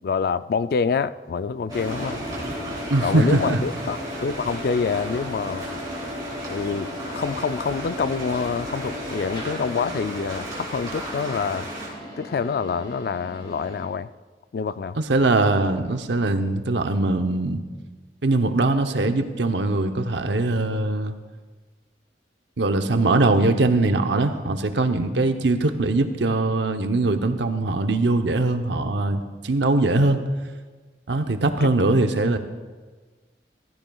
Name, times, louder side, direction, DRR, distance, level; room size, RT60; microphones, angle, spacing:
voice 1, 0.0-2.3 3.0-5.7 6.5-11.7 12.2-14.1 14.5-15.0 31.6-31.7, left 5 dB, 55° left, 14 dB, 0.3 m, -26 dB
sound 1, 1.7-13.9, left 1 dB, 30° left, 2.6 m, -35 dB
sound 2, 1.7-11.9, right 1 dB, 25° right, 3.2 m, -36 dB
voice 2, 2.9-3.6 15.1-17.6 18.2-21.2 22.6-30.2 31.1-32.4, right 2 dB, 85° right, 7 dB, 0.8 m, -21 dB
15.5 x 15.0 x 2.3 m, 1.4 s
head